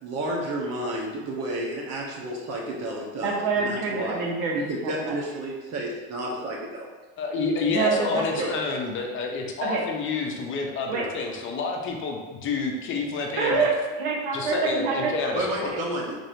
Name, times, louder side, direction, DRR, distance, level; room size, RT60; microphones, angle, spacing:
voice 1, 0.0-4.2 4.5-6.9 8.4-8.5 15.3-16.1, right 1 dB, 55° right, -2 dB, 1.2 m, -31 dB
voice 2, 3.2-5.1 7.7-8.6 9.6-9.9 10.9-11.1 13.3-15.2 15.7-15.8, right 4 dB, 75° right, -1 dB, 0.9 m, -26 dB
voice 3, 7.2-13.7 14.3-15.7, left 3 dB, 40° left, 1 dB, 0.7 m, -29 dB
4.1 x 3.3 x 2.6 m, 1.2 s
supercardioid pair, 115°, 32 cm